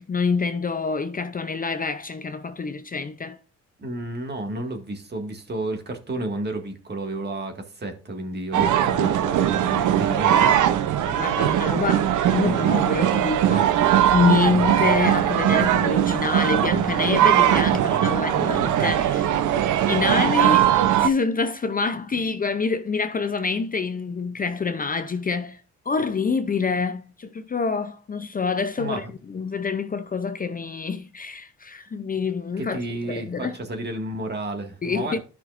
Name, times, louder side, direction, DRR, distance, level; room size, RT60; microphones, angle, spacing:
voice 1, 0.0-3.4 9.7-9.9 11.0-19.3 19.9-25.6 25.9-32.8 33.1-33.6 34.8-35.2, left 4 dB, 30° left, 0.6 m, -26 dB
voice 2, 3.8-10.4 28.8-29.1 32.6-35.2, right 1 dB, 35° right, 1.9 m, -31 dB
sound 1, 8.5-21.1, right 10 dB, 80° right, 0.8 m, -20 dB
13.0 x 5.9 x 2.6 m
cardioid pair, 90°, 30 cm